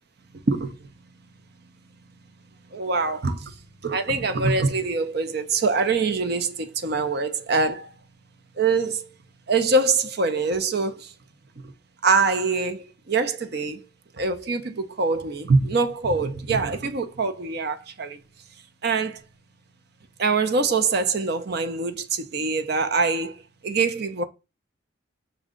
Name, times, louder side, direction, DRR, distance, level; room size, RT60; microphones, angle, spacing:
voice 1, 0.3-0.9 2.7-7.9 8.6-9.1 9.5-11.1 11.6-11.7 12.0-13.9 14.1-18.2 18.8-19.2 20.2-24.3, right 4 dB, 50° right, 0.6 m, -24 dB
6.1 x 2.3 x 3.7 m
head